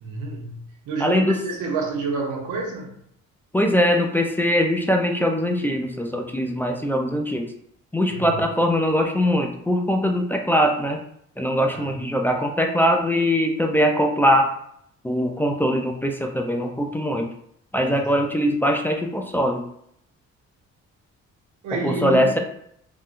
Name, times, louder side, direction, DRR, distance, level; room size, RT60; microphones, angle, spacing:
voice 1, 0.0-2.9 8.1-8.3 11.7-12.0 17.9-18.2 21.6-22.3, right 3 dB, 85° right, 0 dB, 0.9 m, -29 dB
voice 2, 1.0-1.4 3.5-7.5 7.9-11.0 11.4-14.5 15.0-17.3 17.7-19.6 21.8-22.4, equal, 5° left, 1 dB, 0.3 m, -21 dB
3.5 x 2.2 x 2.5 m, 0.70 s
cardioid pair, 90°, 30 cm